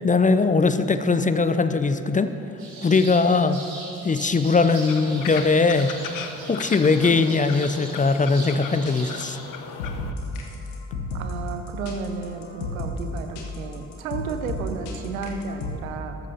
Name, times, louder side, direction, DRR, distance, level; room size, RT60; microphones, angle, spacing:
voice 1, 0.0-2.3 2.8-3.6 4.0-5.9 6.5-9.4, left 4 dB, 20° left, 11 dB, 0.5 m, -20 dB
sound 1, 2.6-9.4, right 3 dB, 65° right, 2.8 m, -40 dB
sound 2, 4.9-10.1, left 7 dB, 50° left, 0.8 m, -37 dB
sound 3, 8.5-8.6 8.9-9.0 9.4-15.8, left 2 dB, 80° left, 1.1 m, -32 dB
voice 2, 11.1-16.3, right 5 dB, 85° right, 7 dB, 0.7 m, -33 dB
13.5 x 13.5 x 2.8 m, 2.9 s
figure-of-eight pair, 40°, 40 cm